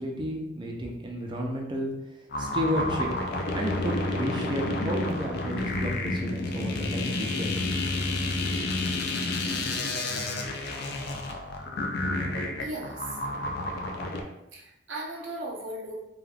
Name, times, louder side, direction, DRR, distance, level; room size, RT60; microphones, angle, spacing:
voice 1, 0.0-1.9 2.4-3.1 3.5-8.0, equal, 25° right, 0 dB, 0.4 m, -32 dB
sound 1, 2.3-14.2, left 2 dB, 55° left, 0.4 m, -30 dB
voice 2, 12.6-13.0 14.5-16.1, right 1 dB, 80° right, -2 dB, 0.7 m, -37 dB
3.3 x 2.3 x 2.3 m, 0.90 s
head